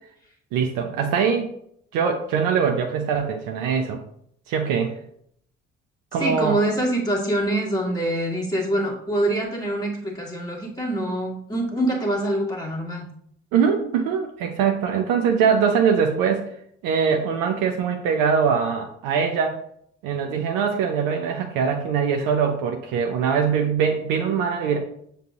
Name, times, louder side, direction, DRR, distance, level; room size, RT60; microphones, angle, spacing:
voice 1, 0.5-1.5 1.9-4.0 4.5-4.9 6.1-6.6 13.5-16.4 16.8-19.6 20.0-24.8, right 6 dB, 60° right, 4 dB, 0.6 m, -22 dB
voice 2, 6.2-13.1, right 1 dB, 10° left, -3 dB, 1.4 m, -25 dB
6.6 x 2.2 x 3.6 m, 0.68 s
figure-of-eight pair, 40°, 37 cm